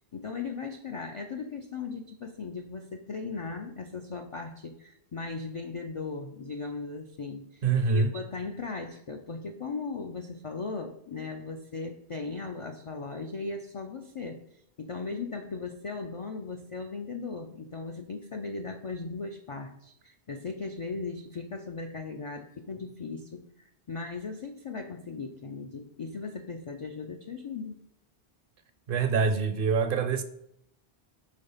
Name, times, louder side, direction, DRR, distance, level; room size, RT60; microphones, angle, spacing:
voice 1, 0.1-14.4 14.8-27.8, left 4 dB, 60° left, 0.3 m, -38 dB
voice 2, 7.6-8.1 28.9-30.2, right 5 dB, 65° right, 0.7 m, -25 dB
5.3 x 3.9 x 5.4 m
omnidirectional pair, 1.1 m